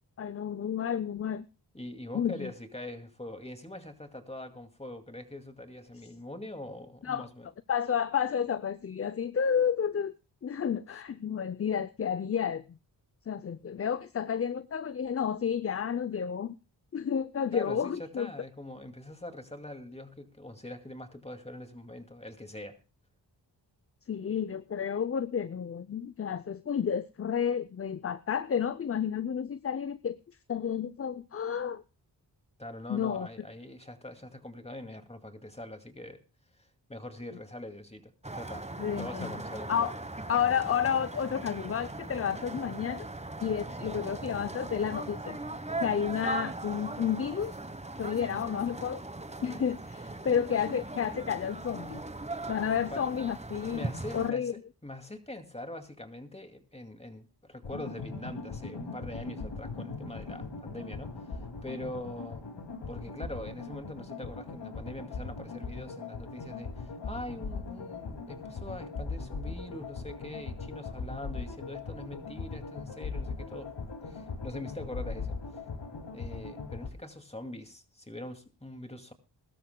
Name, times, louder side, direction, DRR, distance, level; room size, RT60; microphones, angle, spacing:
voice 1, 0.2-1.5 2.1-2.5 7.0-7.3 7.7-10.2 10.4-12.8 13.3-16.6 16.9-18.3 24.1-30.2 30.5-31.8 32.9-33.3 38.8-39.3 39.7-39.9 40.3-43.1 43.4-45.4 45.8-47.5 48.0-49.0 49.4-52.0 52.5-54.5, left 8 dB, 30° left, 0.5 m, -31 dB
voice 2, 1.7-7.5 17.5-22.8 32.6-36.2 36.6-38.7 38.9-40.0 52.6-52.7 52.9-53.1 53.7-62.4 62.9-73.7 74.0-75.4 76.1-79.1, left 1 dB, 15° left, 2.3 m, -43 dB
sound 1, 38.2-54.3, right 2 dB, 15° right, 1.2 m, -39 dB
sound 2, 57.6-76.9, left 4 dB, 70° left, 2.5 m, -40 dB
21.5 x 12.5 x 2.2 m
cardioid pair, 45°, 45 cm